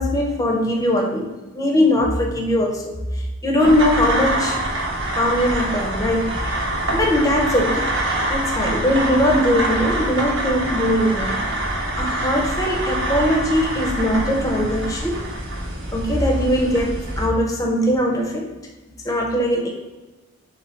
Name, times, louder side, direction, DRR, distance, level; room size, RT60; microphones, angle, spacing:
voice 1, 0.0-3.0 3.4-4.6 5.1-8.0 8.3-11.7 12.0-15.2 15.9-18.5 19.0-19.7, left 1 dB, 15° left, 1 dB, 0.6 m, -20 dB
sound 1, 3.6-17.3, right 1 dB, 65° right, 1.0 m, -25 dB
4.0 x 3.1 x 4.2 m, 1.1 s
head